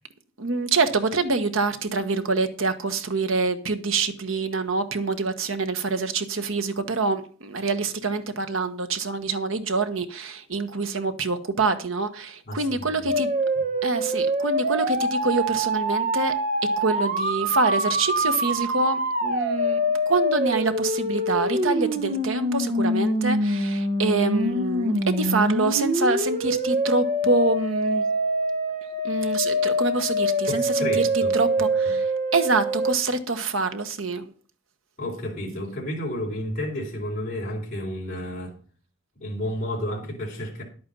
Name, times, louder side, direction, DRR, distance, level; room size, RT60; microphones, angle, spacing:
voice 1, 0.4-13.3 13.8-16.4 16.8-28.1 29.0-34.3, right 3 dB, 90° right, 1.3 m, -26 dB
voice 2, 12.5-13.2 30.5-31.3 31.9-32.0 35.0-38.6 39.2-40.6, left 1 dB, 40° left, 3.9 m, -31 dB
sound 1, 13.1-32.9, equal, 45° right, 1.5 m, -25 dB
10.5 x 8.6 x 5.4 m
head